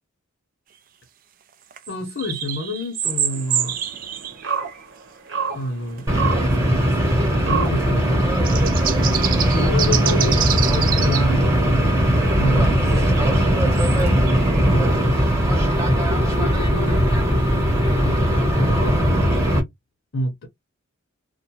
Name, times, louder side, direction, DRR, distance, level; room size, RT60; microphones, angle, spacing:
sound 1, 1.7-4.8 6.0-6.1 8.1-11.3 12.9-14.9, right 10 dB, 45° right, 0.4 m, -27 dB
voice 1, 1.9-3.8 5.5-6.1 7.5-8.3 9.5-11.9 12.3-13.1 14.3-14.9 16.3-19.4 20.1-20.5, left 1 dB, 65° left, 0.7 m, -29 dB
sound 2, 3.0-8.3, right 6 dB, 65° right, 1.0 m, -31 dB
sound 3, 6.1-19.6, equal, 15° right, 1.0 m, -19 dB
2.4 x 2.2 x 2.8 m
head